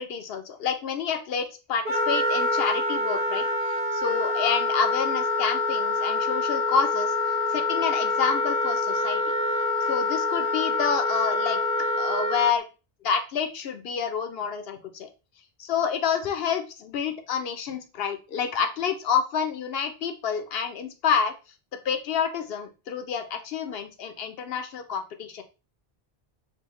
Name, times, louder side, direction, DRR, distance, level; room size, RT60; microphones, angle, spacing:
voice 1, 0.0-1.4 1.7-7.1 7.5-9.2 9.9-11.6 12.0-12.6 13.0-15.1 15.6-21.3 21.8-25.4, left 6 dB, 75° left, 6 dB, 0.9 m, -28 dB
Wind instrument woodwind instrument, 1.8-12.5, left 2 dB, 65° right, 1.1 m, -26 dB
5.4 x 2.2 x 3.1 m, 0.31 s
omnidirectional pair, 1.0 m